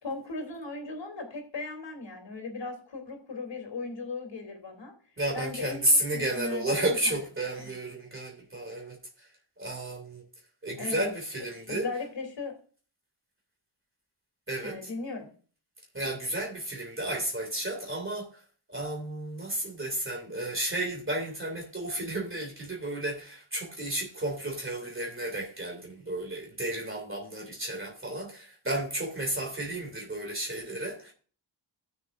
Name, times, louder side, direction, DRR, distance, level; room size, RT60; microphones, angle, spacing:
voice 1, 0.0-4.9 5.3-7.2 7.6-7.7 10.8-11.1 11.7-12.5 14.6-15.3, left 3 dB, 65° left, 3.2 m, -38 dB
voice 2, 5.2-9.3 9.6-10.2 10.6-11.9 14.5-14.9 15.9-18.3 18.7-31.1, right 1 dB, 25° right, 2.6 m, -32 dB
16.5 x 6.6 x 2.5 m
wide cardioid pair, 85°, 47 cm